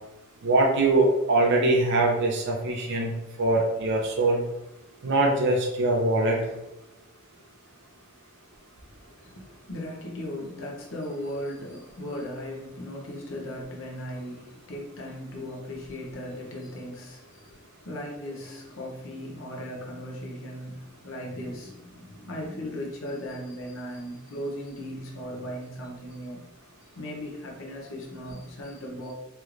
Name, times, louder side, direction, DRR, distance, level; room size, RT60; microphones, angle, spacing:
voice 1, 0.4-3.1 3.4-4.4 5.0-6.4, right 2 dB, 55° right, 0.5 m, -22 dB
voice 2, 8.8-26.5 27.0-29.1, equal, 65° left, 0.7 m, -37 dB
3.1 x 3.0 x 2.4 m
head